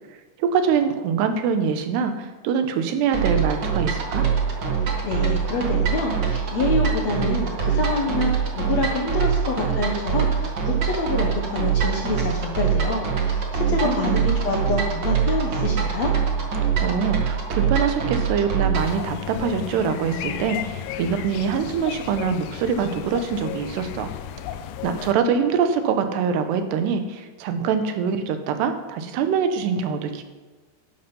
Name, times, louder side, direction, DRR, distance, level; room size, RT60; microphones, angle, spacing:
voice 1, 0.4-4.3 13.8-14.2 16.8-24.1 24.8-30.2, right 6 dB, 85° right, 8 dB, 3.1 m, -24 dB
sound 1, 3.1-19.0, right 6 dB, 65° right, 1.1 m, -24 dB
voice 2, 5.0-16.1, left 3 dB, 65° left, 0 dB, 1.7 m, -26 dB
sound 2, 18.7-25.1, left 9 dB, 85° left, 2.8 m, -34 dB
11.5 x 11.0 x 5.4 m, 1.2 s
omnidirectional pair, 4.7 m